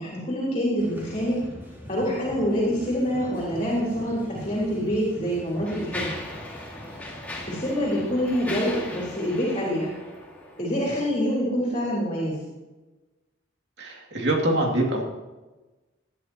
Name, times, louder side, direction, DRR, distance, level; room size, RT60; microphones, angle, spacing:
voice 1, 0.0-1.4 1.9-6.1 7.5-9.9 10.6-12.4, equal, 35° left, -6 dB, 3.8 m, -26 dB
sound 1, 0.8-9.2, equal, 15° right, 3.7 m, -44 dB
Mechanisms, 4.3-4.4 5.1-10.9, left 1 dB, 10° left, 2.3 m, -38 dB
voice 2, 13.8-15.0, right 1 dB, 65° right, 0 dB, 2.6 m, -24 dB
18.5 x 11.0 x 3.0 m, 1.1 s
head